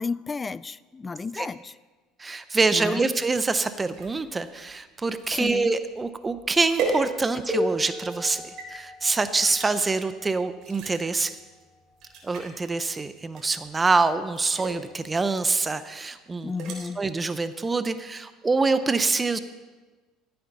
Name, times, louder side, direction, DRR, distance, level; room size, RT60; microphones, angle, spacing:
voice 1, 0.0-1.7 2.7-3.2 5.4-5.7 16.4-17.0, left 4 dB, 25° left, 19 dB, 0.4 m, -32 dB
voice 2, 2.2-11.4 12.2-16.5 17.0-19.4, right 3 dB, 20° right, 12 dB, 0.7 m, -25 dB
sound 1, 3.9-7.6 8.1-8.7 9.4-9.7 10.6-11.2 11.6-11.7 12.0-12.5 13.3-13.7 14.2-14.8 16.3-16.8, right 4 dB, 60° right, 3.4 m, -35 dB
sound 2, 7.5-12.9 14.0-14.1 14.9-15.1, left 1 dB, ahead, 4.0 m, -36 dB
14.5 x 8.8 x 5.4 m, 1.3 s
supercardioid pair, 95°, 0 cm